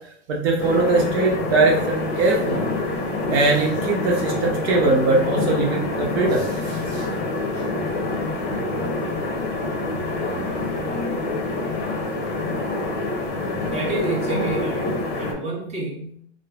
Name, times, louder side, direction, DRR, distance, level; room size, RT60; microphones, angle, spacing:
voice 1, 0.3-2.7 3.3-7.1 10.2-10.7, right 3 dB, 70° right, 0 dB, 0.7 m, -21 dB
sound 1, 0.6-15.3, left 2 dB, 35° left, 0.7 m, -26 dB
voice 2, 13.5-16.2, right 2 dB, 20° right, -4 dB, 1.0 m, -29 dB
3.1 x 2.1 x 2.3 m, 0.68 s
hypercardioid pair, 115°, 33 cm